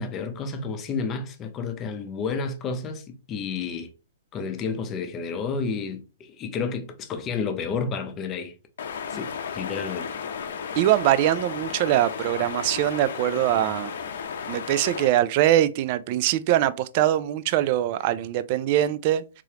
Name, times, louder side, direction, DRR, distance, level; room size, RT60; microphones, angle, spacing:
voice 1, 0.0-3.9 4.3-8.5 9.1-10.1, left 5 dB, 25° left, 0.6 m, -31 dB
sound 1, 8.8-15.1, left 6 dB, 70° left, 0.6 m, -34 dB
voice 2, 10.8-13.9 14.5-19.4, right 13 dB, 45° right, 0.3 m, -22 dB
3.7 x 3.1 x 2.8 m
hypercardioid pair, 140°, 0 cm